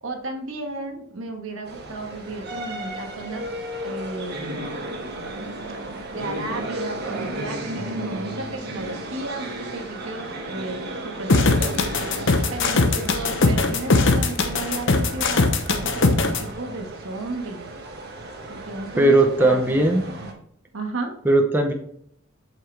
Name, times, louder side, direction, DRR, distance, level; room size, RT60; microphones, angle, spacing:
voice 1, 0.0-3.4 3.8-4.6 6.1-11.8 12.5-17.7 18.5-19.8 20.2-20.3 20.7-21.1, right 2 dB, 65° right, 3 dB, 1.4 m, -33 dB
sound 1, 1.7-20.3, right 1 dB, 50° right, 1.4 m, -34 dB
sound 2, 11.3-16.4, left 3 dB, 60° left, 0.8 m, -20 dB
voice 2, 19.0-20.0 21.2-21.7, right 2 dB, 10° right, 2 dB, 0.7 m, -17 dB
7.3 x 5.7 x 3.3 m, 0.68 s
head